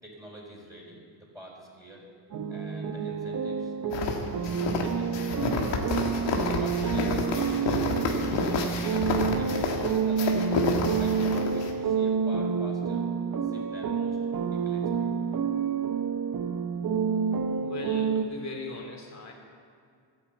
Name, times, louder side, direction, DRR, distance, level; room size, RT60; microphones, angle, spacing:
voice 1, 0.0-2.1 2.5-3.7 4.3-5.3 6.4-10.4 11.0-13.1 13.4-14.2 14.5-15.1, equal, 5° right, -5 dB, 4.1 m, -47 dB
sound 1, 2.3-18.2, right 6 dB, 50° right, 0.8 m, -28 dB
sound 2, 3.9-11.7, left 4 dB, 80° left, 1.7 m, -29 dB
voice 2, 17.6-19.3, left 3 dB, 40° left, 0 dB, 3.0 m, -38 dB
11.5 x 8.7 x 8.2 m, 2.2 s
cardioid pair, 70°, 43 cm